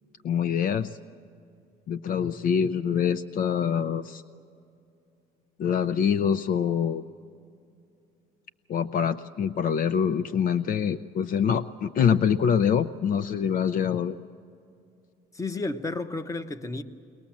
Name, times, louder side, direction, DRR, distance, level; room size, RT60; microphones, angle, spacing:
voice 1, 0.2-1.0 1.9-4.2 5.6-7.0 8.7-14.2, left 7 dB, 55° left, 0.5 m, -25 dB
voice 2, 15.3-16.8, left 2 dB, 20° left, 1.0 m, -32 dB
22.0 x 20.0 x 7.3 m
cardioid pair, 110°, 17 cm